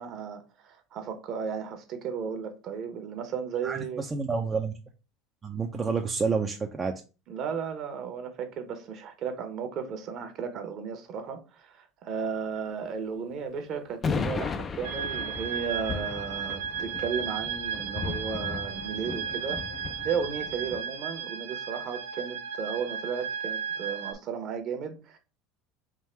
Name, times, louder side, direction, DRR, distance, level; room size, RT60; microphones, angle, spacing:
voice 1, 0.0-4.0 7.3-19.6 20.0-25.2, right 6 dB, 50° right, 1.0 m, -34 dB
voice 2, 3.6-4.7 5.4-6.9, right 5 dB, 25° right, 0.5 m, -29 dB
sound 1, 14.0-20.8, left 5 dB, 30° left, 0.4 m, -36 dB
sound 2, 14.8-24.1, right 7 dB, 85° right, 0.4 m, -35 dB
3.7 x 2.6 x 4.3 m
supercardioid pair, 110°, 0 cm